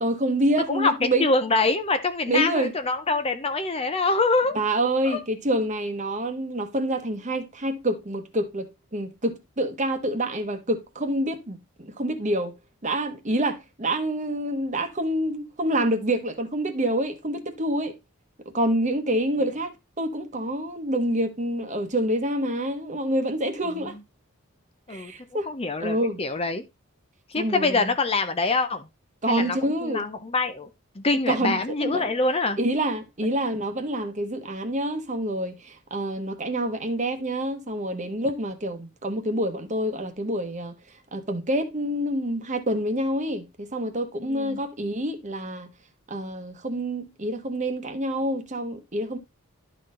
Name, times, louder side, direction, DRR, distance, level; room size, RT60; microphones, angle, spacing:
voice 1, 0.0-1.3 2.3-2.7 4.5-12.5 12.8-18.0 18.5-23.9 24.9-25.5 25.8-26.2 27.4-27.9 29.2-30.1 31.3-32.1 32.6-40.7 41.1-45.7 46.1-49.2, right 1 dB, 35° right, 1.1 m, -27 dB
voice 2, 0.7-4.6 5.0-5.2 24.9-25.1 25.5-26.6 27.3-28.8 29.3-30.7 31.0-32.6 44.3-44.6, left 3 dB, 25° left, 0.7 m, -25 dB
12.0 x 4.2 x 3.8 m
head